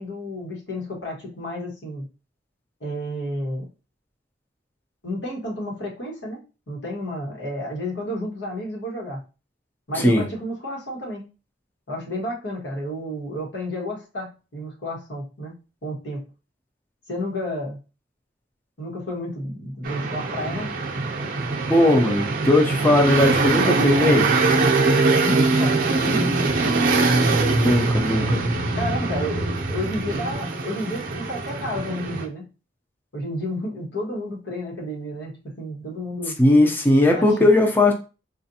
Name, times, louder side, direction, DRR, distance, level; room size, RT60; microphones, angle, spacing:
voice 1, 0.0-2.0 2.8-3.7 5.0-9.2 9.9-11.2 11.9-15.5 15.8-16.2 17.1-17.8 18.8-20.7 25.2-26.5 28.7-32.5 33.1-36.3 37.1-37.5, equal, 85° left, -2 dB, 1.4 m, -31 dB
sound 1, 19.8-32.3, right 3 dB, 50° right, 0.6 m, -22 dB
voice 2, 21.7-24.3 27.5-28.4 36.4-37.9, left 1 dB, 10° left, 2 dB, 0.5 m, -18 dB
4.2 x 2.5 x 2.7 m, 0.31 s
head